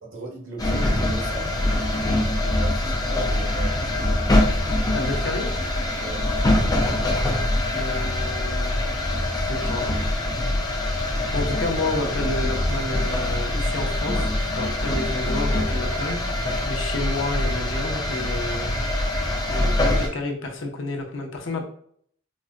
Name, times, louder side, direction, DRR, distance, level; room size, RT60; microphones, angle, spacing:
voice 1, 0.0-1.6 2.6-4.5 6.0-6.4 11.4-11.5, right 2 dB, 90° right, -1 dB, 1.0 m, -38 dB
sound 1, 0.6-20.1, left 1 dB, 20° left, 0.5 m, -24 dB
voice 2, 4.9-5.5 7.7-8.7 9.4-9.8 11.3-16.2 16.7-18.8 19.5-21.6, left 2 dB, 75° left, 1 dB, 0.7 m, -30 dB
4.1 x 2.1 x 2.4 m, 0.62 s
head